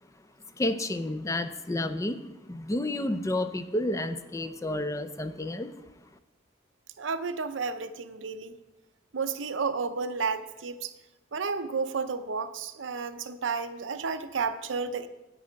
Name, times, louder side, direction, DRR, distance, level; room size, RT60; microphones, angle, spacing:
voice 1, 0.6-2.2 2.5-5.7, left 1 dB, 15° left, 10 dB, 0.4 m, -30 dB
voice 2, 7.0-8.6 9.1-10.9 11.3-15.1, right 5 dB, 80° right, 10 dB, 0.6 m, -32 dB
8.8 x 8.5 x 5.2 m, 1.0 s
head